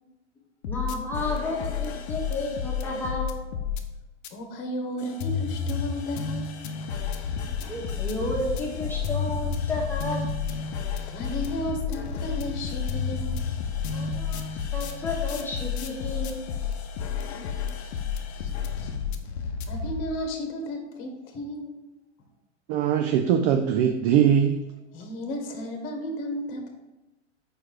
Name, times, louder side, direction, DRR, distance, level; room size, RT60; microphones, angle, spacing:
sound 1, 0.6-3.8 4.2-4.3 5.0-20.0, left 6 dB, 65° left, 0.8 m, -31 dB
voice 1, 0.7-3.4 7.7-10.3 13.9-16.4, left 2 dB, 5° left, -3 dB, 1.4 m, -32 dB
voice 2, 4.3-6.5 11.1-13.4 18.4-18.5 18.8-18.9 19.4-21.8 24.9-26.7, equal, 35° left, 4 dB, 1.2 m, -34 dB
voice 3, 22.7-24.7, right 8 dB, 35° right, 6 dB, 0.4 m, -21 dB
4.9 x 4.6 x 4.6 m, 1.0 s
hypercardioid pair, 100°, 35 cm